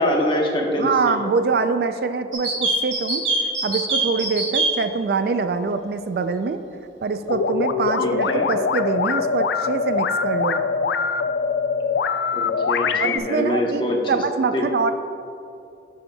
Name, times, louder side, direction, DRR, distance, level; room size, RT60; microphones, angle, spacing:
voice 1, 0.0-1.2 8.0-8.5 12.3-14.0 14.5-14.6, left 1 dB, 25° left, 0 dB, 0.8 m, -24 dB
voice 2, 0.8-3.2 3.6-6.6 7.0-10.6 13.0-14.9, right 4 dB, 55° right, 10 dB, 0.3 m, -24 dB
sound 1, 2.3-4.7, right 2 dB, 85° right, 1.4 m, -22 dB
sound 2, 7.3-13.2, left 5 dB, 75° left, 0.3 m, -23 dB
12.5 x 5.4 x 2.2 m, 2.7 s
head